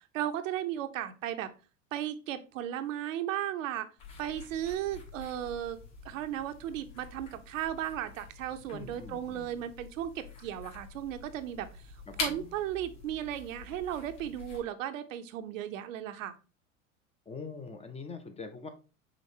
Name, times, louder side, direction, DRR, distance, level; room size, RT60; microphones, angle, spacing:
voice 1, 0.1-1.5 1.9-3.9 4.2-5.8 6.0-11.7 12.2-16.3, right 11 dB, 70° right, 9 dB, 0.7 m, -35 dB
sound 1, 4.0-14.6, left 4 dB, 65° left, 2.2 m, -45 dB
voice 2, 8.7-9.6 12.1-12.5 17.3-18.7, left 4 dB, 15° left, 7 dB, 0.5 m, -43 dB
5.1 x 3.8 x 2.7 m, 0.33 s
hypercardioid pair, 85°, 40 cm